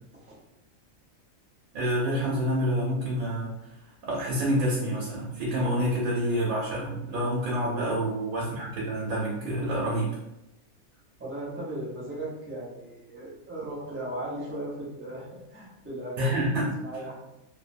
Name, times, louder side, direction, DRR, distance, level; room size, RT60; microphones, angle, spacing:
voice 1, 1.7-3.5 4.0-10.1 16.2-17.0, equal, 85° right, -5 dB, 1.2 m, -28 dB
voice 2, 7.6-8.0 11.2-16.4 16.8-17.2, right 1 dB, 15° right, -6 dB, 0.4 m, -37 dB
2.9 x 2.0 x 2.5 m, 0.89 s
omnidirectional pair, 1.4 m